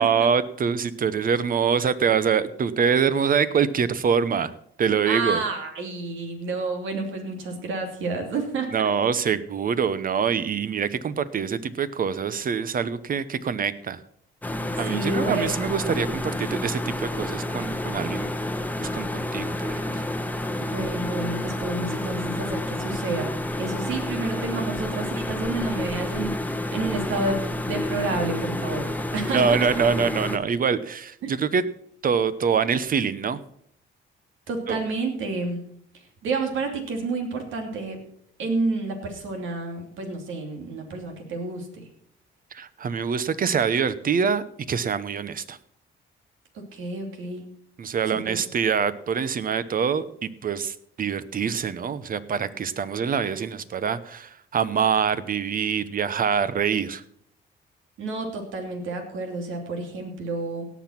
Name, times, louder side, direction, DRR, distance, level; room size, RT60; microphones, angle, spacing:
voice 1, 0.0-4.5 4.8-5.4 8.7-14.0 14.8-18.4 18.8-20.0 29.3-31.6 32.0-33.4 34.7-34.8 42.5-45.6 47.8-57.0, right 6 dB, 45° right, 15 dB, 0.9 m, -25 dB
voice 2, 5.1-8.7 14.9-15.5 20.6-29.5 31.2-31.3 34.5-35.6 35.9-38.0 38.4-41.8 46.5-47.4 48.1-48.4 58.0-60.6, right 3 dB, 80° right, 3 dB, 2.9 m, -30 dB
sound 1, 14.4-30.4, left 1 dB, 10° left, 1.0 m, -29 dB
17.5 x 6.1 x 5.9 m, 0.66 s
cardioid pair, 90°, 20 cm